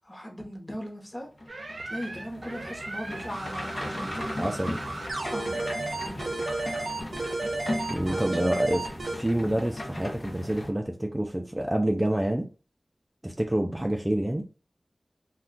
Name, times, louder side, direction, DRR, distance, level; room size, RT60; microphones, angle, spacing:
voice 1, 0.0-1.3 1.9-4.5 5.3-5.6 6.0-6.3 8.1-8.5, equal, 25° left, 1 dB, 0.9 m, -38 dB
sound 1, 1.4-10.7, left 1 dB, 65° left, 0.7 m, -37 dB
sound 2, 1.5-9.2, right 2 dB, 80° right, 0.6 m, -34 dB
voice 2, 4.4-4.8 7.9-12.5 13.2-14.4, right 1 dB, 20° right, 3 dB, 0.4 m, -27 dB
2.3 x 2.2 x 3.7 m, 0.35 s
wide cardioid pair, 50°, 0 cm